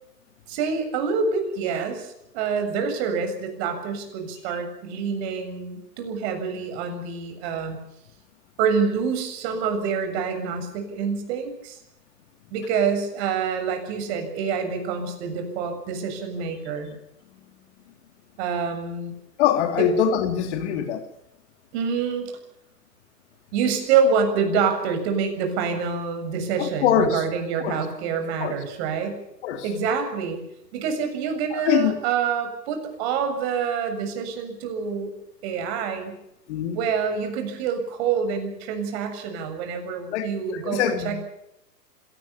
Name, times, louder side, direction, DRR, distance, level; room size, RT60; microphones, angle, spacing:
voice 1, 0.5-7.8 8.6-11.8 12.5-16.9 18.4-19.1 19.8-19.9 21.7-22.3 23.5-29.2 29.6-30.4 30.7-35.1 35.4-36.1 36.7-41.2, right 6 dB, 40° right, 7.3 m, -26 dB
voice 2, 19.4-21.1 26.6-27.2 27.6-27.8 28.4-28.6 29.4-29.6 31.5-32.0 36.5-36.8 40.1-41.2, left 9 dB, 45° left, 3.1 m, -23 dB
26.0 x 18.5 x 7.1 m
hypercardioid pair, 130°, 48 cm